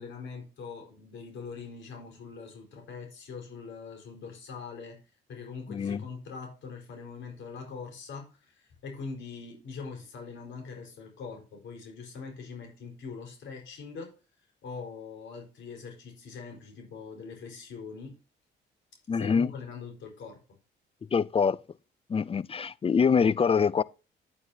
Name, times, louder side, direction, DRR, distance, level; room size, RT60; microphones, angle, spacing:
voice 1, 0.0-5.0 5.3-14.2 14.6-18.2 19.1-20.4, left 5 dB, 70° left, 4.6 m, -42 dB
voice 2, 5.7-6.0 19.1-19.5 21.1-21.6 22.1-23.8, left 6 dB, 30° left, 0.5 m, -24 dB
9.9 x 9.3 x 2.8 m
cardioid pair, 90°, 20 cm